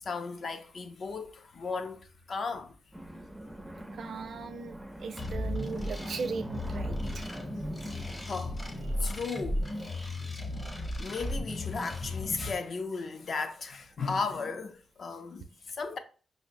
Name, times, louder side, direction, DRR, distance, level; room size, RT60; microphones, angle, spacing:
voice 1, 0.0-2.7 8.3-8.6 9.0-9.7 11.0-15.5 15.8-16.0, left 4 dB, 50° left, 0.5 m, -35 dB
sound 1, 2.9-10.3, right 1 dB, ahead, 0.4 m, -44 dB
voice 2, 3.9-7.3 7.6-7.9 9.0-9.2, right 5 dB, 65° right, 0.4 m, -39 dB
sound 2, 5.2-12.5, left 1 dB, 25° left, 0.8 m, -35 dB
5.7 x 2.0 x 2.6 m
cardioid pair, 110°, 0 cm